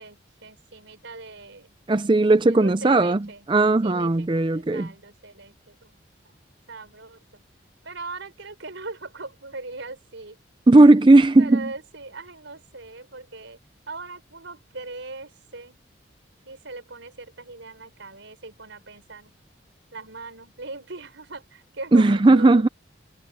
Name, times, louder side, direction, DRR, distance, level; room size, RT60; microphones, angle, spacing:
voice 1, 0.0-1.7 2.4-3.5 3.8-6.0 6.2-6.4 6.7-7.4 7.8-10.4 11.4-13.6 13.9-15.8 16.4-19.4 19.9-22.6, right 3 dB, 80° right, 4.8 m, -40 dB
voice 2, 1.9-4.9 10.7-11.7 21.9-22.7, right 2 dB, 25° right, 0.4 m, -16 dB
head